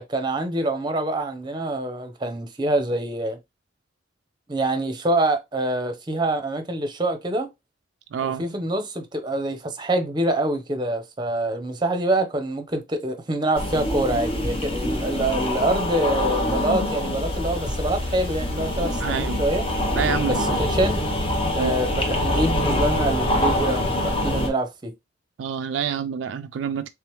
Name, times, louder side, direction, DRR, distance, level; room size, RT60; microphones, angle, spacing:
voice 1, 0.0-3.4 4.5-7.5 8.2-19.7 20.2-21.0 21.6-24.9, right 1 dB, 25° right, 0.7 m, -25 dB
voice 2, 8.1-8.4 19.0-19.5 19.9-20.6 21.6-21.7 25.4-26.9, right 7 dB, 70° right, 0.3 m, -27 dB
sound 1, 13.5-24.5, left 1 dB, 30° left, 0.8 m, -25 dB
3.4 x 3.3 x 3.0 m
head